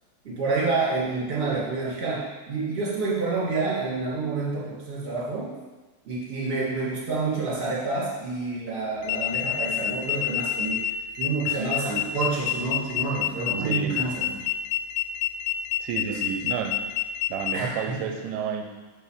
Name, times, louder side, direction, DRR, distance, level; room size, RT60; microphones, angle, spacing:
voice 1, 0.2-5.5 6.0-10.8 11.2-14.4 16.1-16.2 17.5-18.1, right 3 dB, 25° right, -7 dB, 1.3 m, -28 dB
sound 1, 9.0-17.5, left 12 dB, 80° left, 2.7 m, -27 dB
voice 2, 13.6-14.0 15.8-16.8 17.3-18.6, right 7 dB, 85° right, 4 dB, 3.1 m, -31 dB
7.8 x 4.6 x 6.7 m, 1.2 s
omnidirectional pair, 5.2 m